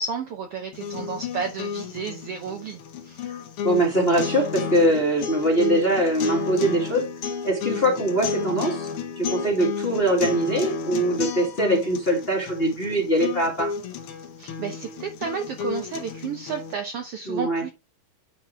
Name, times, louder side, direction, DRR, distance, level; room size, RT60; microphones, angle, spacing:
voice 1, 0.0-3.3 14.4-17.7, right 5 dB, 85° right, 1.3 m, -32 dB
sound 1, 0.7-16.7, left 6 dB, 80° left, 1.2 m, -32 dB
voice 2, 3.6-7.0 7.4-8.9 9.2-13.7 17.3-17.6, right 1 dB, 25° left, 1.4 m, -22 dB
9.6 x 4.2 x 4.3 m
omnidirectional pair, 4.0 m